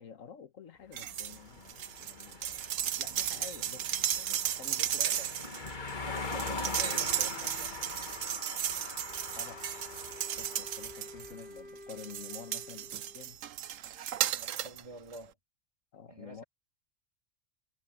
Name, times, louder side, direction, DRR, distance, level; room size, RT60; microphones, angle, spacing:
voice 1, 0.0-3.9 4.1-5.2 9.4-9.6 10.3-13.4 15.9-16.4, left 7 dB, 75° left, 1.7 m, -50 dB
sound 1, 0.9-1.4 1.7-11.4 11.9-14.8 15.1-15.2, right 10 dB, 75° right, 1.1 m, -35 dB
sound 2, 1.0-11.3, left 3 dB, 35° left, 1.8 m, -42 dB
voice 2, 4.8-5.3 6.0-7.8 14.3-15.3 16.1-16.4, right 2 dB, 25° right, 3.0 m, -48 dB
Wind instrument woodwind instrument, 9.0-13.4, left 1 dB, 50° right, 5.4 m, -51 dB
omnidirectional pair, 1.4 m